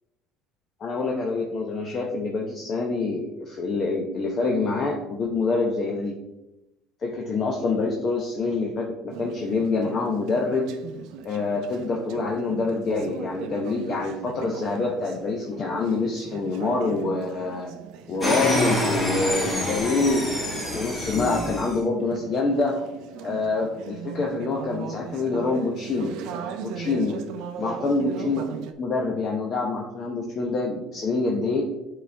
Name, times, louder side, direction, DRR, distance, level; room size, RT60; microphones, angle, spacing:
voice 1, 0.8-6.1 7.0-10.7 11.2-17.7 18.1-20.3 20.7-22.8 23.2-26.2 26.6-27.2 27.6-28.4 28.8-31.7, left 3 dB, 35° left, 0 dB, 0.8 m, -26 dB
Conversation / Chatter, 9.1-28.7, right 7 dB, 70° right, 0.6 m, -39 dB
sound 1, 18.2-21.8, left 1 dB, 15° left, 1.5 m, -26 dB
8.3 x 4.0 x 3.4 m, 0.94 s
cardioid pair, 135°, 0 cm